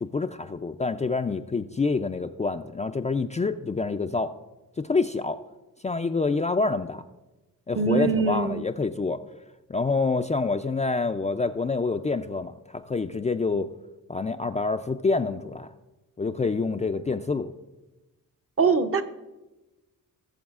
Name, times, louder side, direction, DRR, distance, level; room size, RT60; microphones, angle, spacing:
voice 1, 0.0-4.3 4.8-5.4 5.8-7.0 7.7-9.2 9.7-13.7 14.1-15.7 16.2-17.5, left 3 dB, 20° left, 6 dB, 0.4 m, -27 dB
voice 2, 7.8-8.6 18.6-19.0, right 5 dB, 40° right, 7 dB, 0.7 m, -23 dB
18.0 x 7.0 x 2.4 m, 1.1 s
cardioid pair, 70°, 35 cm